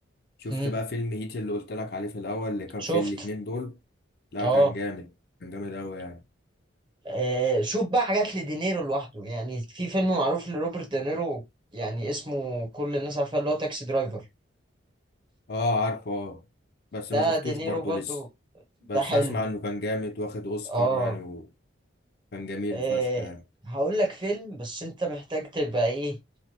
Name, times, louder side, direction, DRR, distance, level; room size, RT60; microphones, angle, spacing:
voice 1, 0.4-3.8 4.3-5.1 5.4-6.2 15.5-16.4 16.9-18.1 18.9-21.4 22.3-23.4, left 2 dB, 50° left, 0.5 m, -32 dB
voice 2, 4.4-4.7 7.0-11.4 11.7-14.2 17.1-18.3 18.9-19.4 20.7-21.2 22.7-23.3 23.6-26.2, right 2 dB, 25° right, 0.8 m, -27 dB
3.2 x 2.2 x 2.8 m
head